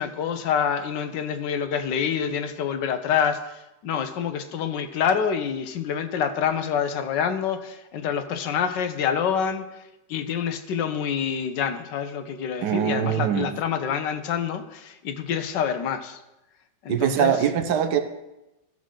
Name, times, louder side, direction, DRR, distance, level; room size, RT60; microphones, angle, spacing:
voice 1, 0.0-16.2 16.8-17.4, left 7 dB, 75° left, 9 dB, 1.4 m, -27 dB
voice 2, 12.6-13.5 16.9-18.0, right 9 dB, 70° right, 8 dB, 1.3 m, -22 dB
14.0 x 6.6 x 3.8 m, 0.95 s
omnidirectional pair, 2.0 m